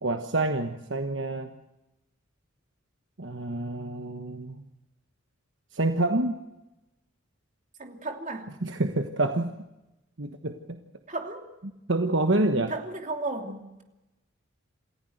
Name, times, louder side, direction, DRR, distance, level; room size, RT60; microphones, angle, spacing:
voice 1, 0.0-1.5 3.2-4.6 5.7-6.4 8.6-9.5 10.2-10.8 11.9-12.8, right 2 dB, 60° right, 6 dB, 1.3 m, -27 dB
voice 2, 7.8-8.5 11.1-11.5 12.7-13.8, right 2 dB, 40° right, 4 dB, 2.9 m, -34 dB
28.0 x 15.5 x 7.9 m, 0.98 s
head